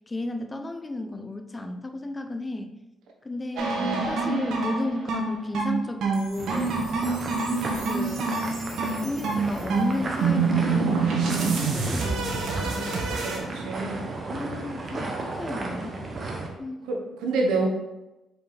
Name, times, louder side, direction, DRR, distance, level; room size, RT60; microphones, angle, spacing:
voice 1, 0.1-2.8 3.2-3.8 4.1-6.7 7.8-8.3 9.0-13.1 14.3-16.0 16.6-16.9, left 2 dB, 20° left, 6 dB, 0.6 m, -33 dB
sound 1, 3.6-13.4, right 4 dB, 75° right, 1.3 m, -26 dB
voice 2, 3.7-4.2 7.0-7.1 13.2-14.1 16.9-17.7, right 3 dB, 90° right, 1 dB, 1.0 m, -28 dB
sound 2, 6.4-16.5, right 2 dB, 40° right, 1.0 m, -34 dB
5.1 x 4.8 x 3.9 m, 0.99 s
cardioid pair, 90°, 0 cm